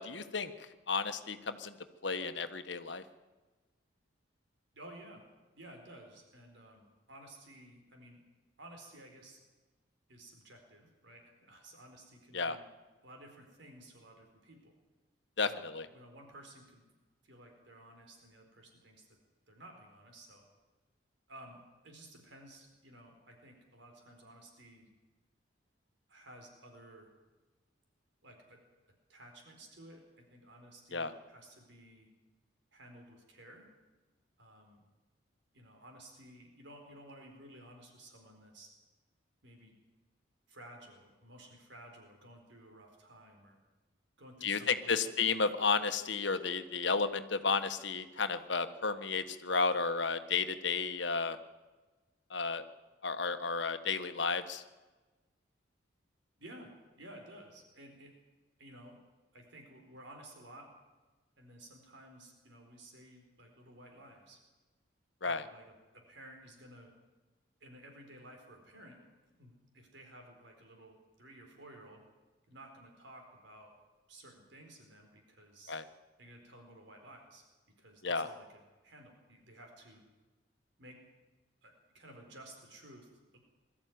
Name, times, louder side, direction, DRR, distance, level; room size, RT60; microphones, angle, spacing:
voice 1, 0.0-1.7 2.0-3.0 12.3-12.6 15.4-15.9 30.9-31.1 44.4-51.4 52.3-52.6 53.0-54.6 65.2-65.5 75.7-75.8 78.0-78.3, left 4 dB, 65° left, 9 dB, 1.3 m, -33 dB
voice 2, 4.7-5.2 5.5-8.2 8.6-9.4 10.1-12.6 13.0-14.7 15.4-16.8 17.2-19.1 19.5-20.4 21.3-21.6 21.8-24.9 26.1-27.1 28.2-28.6 29.1-32.1 32.7-33.7 34.4-34.8 35.5-38.7 39.4-39.7 40.5-43.6 44.2-45.0 56.4-58.1 58.6-59.0 59.3-60.7 61.4-64.4 65.2-66.9 67.6-69.0 69.2-72.0 72.5-73.7 74.1-75.8 76.2-77.4 77.8-80.0 80.8-81.0 81.6-83.4, right 1 dB, 70° right, 3 dB, 4.4 m, -54 dB
21.5 x 13.5 x 9.4 m, 1.2 s
head